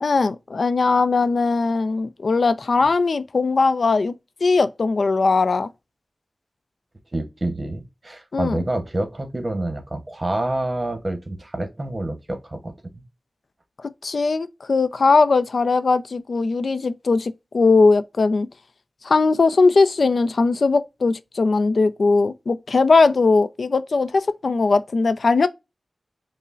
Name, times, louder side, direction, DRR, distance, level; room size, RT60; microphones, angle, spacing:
voice 1, 0.0-4.1 4.4-5.7 8.3-8.6 14.0-18.5 19.0-25.5, left 3 dB, 75° left, 0.3 m, -19 dB
voice 2, 7.1-13.0, right 1 dB, 35° right, 0.9 m, -28 dB
5.3 x 2.0 x 2.4 m
wide cardioid pair, 65°, 0 cm